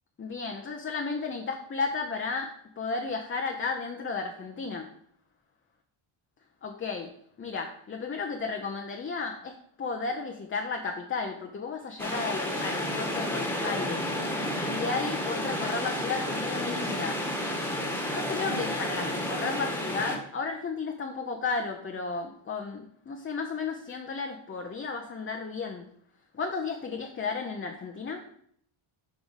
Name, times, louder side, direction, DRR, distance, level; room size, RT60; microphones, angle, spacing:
voice 1, 0.2-4.9 6.6-14.1 14.7-17.2 18.0-25.9 26.3-28.3, left 4 dB, 25° left, 3 dB, 0.7 m, -33 dB
sound 1, 12.0-20.2, left 1 dB, 5° left, 1.3 m, -31 dB
5.0 x 4.9 x 5.5 m, 0.66 s
cardioid pair, 90°, 49 cm